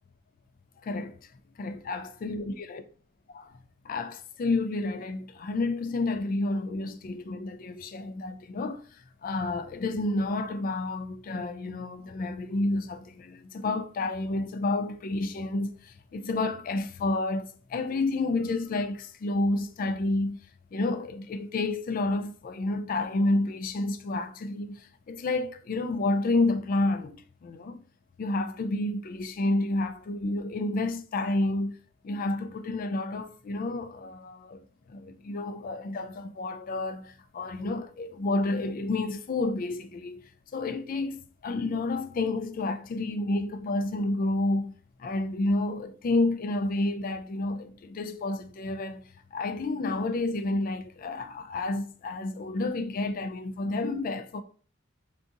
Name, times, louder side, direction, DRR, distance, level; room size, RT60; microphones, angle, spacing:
voice 1, 0.8-1.3 1.6-2.8 3.3-3.5 3.8-8.8 9.2-20.4 20.7-27.8 28.2-31.8 32.0-34.6 34.9-40.2 40.5-44.7 45.0-54.4, left 2 dB, 45° left, 0.3 m, -30 dB
3.6 x 2.8 x 2.6 m
head